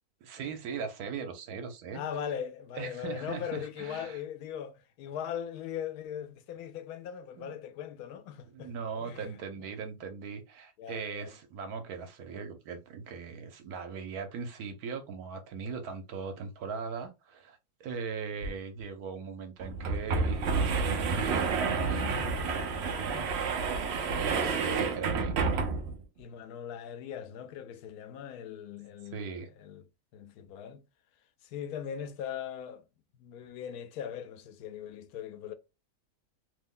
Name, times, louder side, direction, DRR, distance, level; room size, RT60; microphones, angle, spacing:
voice 1, 0.2-2.0 2.8-4.2 7.4-7.5 8.5-22.4 24.1-25.4 29.1-29.5, right 5 dB, 85° right, 1.2 m, -39 dB
voice 2, 1.9-9.7 10.8-11.3 21.2-21.4 22.1-23.4 24.1-25.0 26.2-29.8 30.1-30.8 31.4-32.8 33.1-35.5, left 9 dB, 80° left, 1.1 m, -40 dB
sound 1, 18.4-18.5 18.8-18.9 19.6-26.0, right 4 dB, 65° right, 0.7 m, -30 dB
2.9 x 2.1 x 3.6 m
omnidirectional pair, 1.6 m